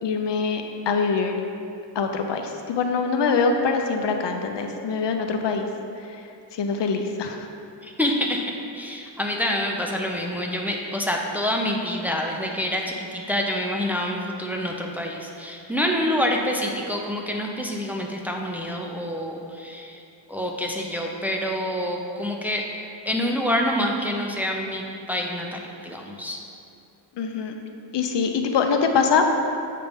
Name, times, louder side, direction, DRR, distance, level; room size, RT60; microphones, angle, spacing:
voice 1, 0.0-1.4 1.9-5.7 6.0-6.2 6.5-7.5 27.2-27.5 27.9-29.2, left 5 dB, 65° left, 4 dB, 0.7 m, -24 dB
voice 2, 7.8-20.0 20.3-22.7 23.1-26.4, left 1 dB, 5° right, 0 dB, 0.6 m, -27 dB
7.5 x 3.4 x 5.2 m, 2.5 s
cardioid pair, 85°, 46 cm